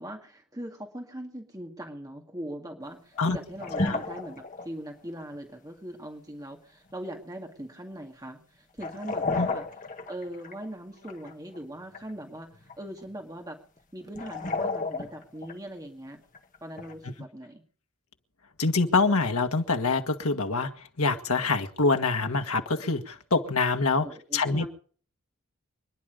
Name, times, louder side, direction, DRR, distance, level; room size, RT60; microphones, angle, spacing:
voice 1, 0.0-9.7 10.1-13.6 13.9-16.2 16.6-17.6 24.0-24.7, right 1 dB, 15° right, 2 dB, 2.2 m, -40 dB
sound 1, 3.2-3.3 3.5-4.7 8.8-10.7 11.0-11.6 11.9-12.1 12.5-13.1 13.8-13.9 14.0-15.5 16.3-17.0, left 3 dB, 35° left, 1.8 m, -32 dB
voice 2, 18.6-20.7 21.0-24.1 24.3-24.7, left 3 dB, 75° left, 5 dB, 1.6 m, -25 dB
26.0 x 10.5 x 5.2 m, 0.44 s
head